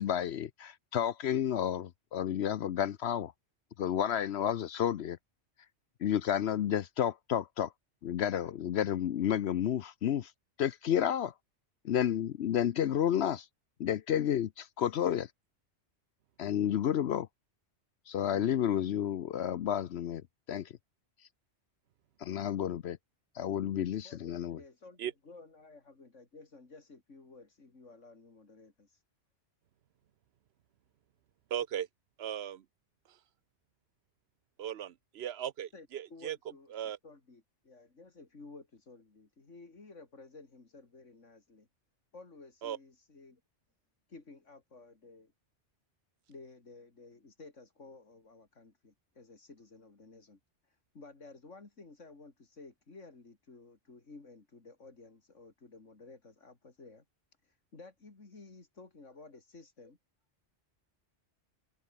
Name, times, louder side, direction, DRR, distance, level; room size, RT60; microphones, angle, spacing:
voice 1, 0.0-3.3 3.8-5.2 6.0-7.7 8.0-10.3 10.6-11.3 11.8-13.5 13.8-15.3 16.4-17.3 18.1-20.7 22.2-23.0 23.4-24.6, left 10 dB, 65° left, 0.9 m, -31 dB
voice 2, 24.0-29.0 35.7-41.7 42.1-43.4 44.1-45.3 46.3-57.0 57.4-60.0, left 3 dB, 90° left, 3.5 m, -54 dB
voice 3, 31.5-31.9 32.2-32.6 34.6-36.4 36.7-37.0 42.6-42.8, right 10 dB, 60° right, 1.0 m, -37 dB
open air
omnidirectional pair, 1.2 m